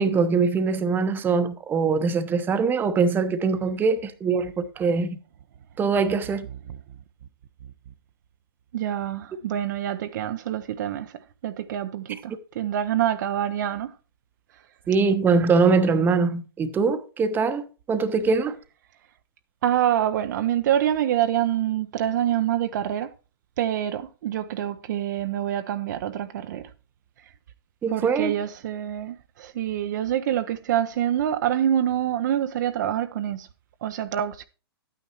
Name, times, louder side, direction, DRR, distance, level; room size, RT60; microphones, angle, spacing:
voice 1, 0.0-5.2 5.8-6.5 14.9-18.5 27.8-28.3, right 4 dB, 15° right, 0.9 m, -22 dB
voice 2, 8.7-11.1 11.4-13.9 19.6-23.1 23.6-26.7 27.9-33.5 33.8-34.4, right 11 dB, 45° right, 0.6 m, -26 dB
11.5 x 9.2 x 3.0 m
figure-of-eight pair, 120°, 13 cm